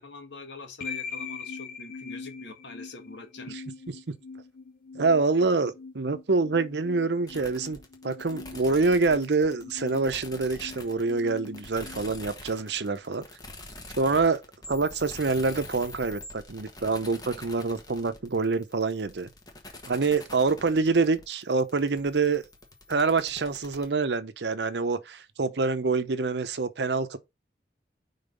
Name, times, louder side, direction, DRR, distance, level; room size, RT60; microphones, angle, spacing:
voice 1, 0.0-3.6, left 3 dB, 85° left, 1.5 m, -44 dB
sound 1, 0.8-12.9, left 5 dB, 50° left, 0.6 m, -42 dB
voice 2, 4.9-7.8 8.0-13.2 13.9-14.4 14.7-19.3 19.9-22.4 22.9-27.2, right 4 dB, 75° right, 0.7 m, -26 dB
sound 2, 7.3-23.9, left 2 dB, 20° left, 1.3 m, -45 dB
5.4 x 3.9 x 5.2 m
head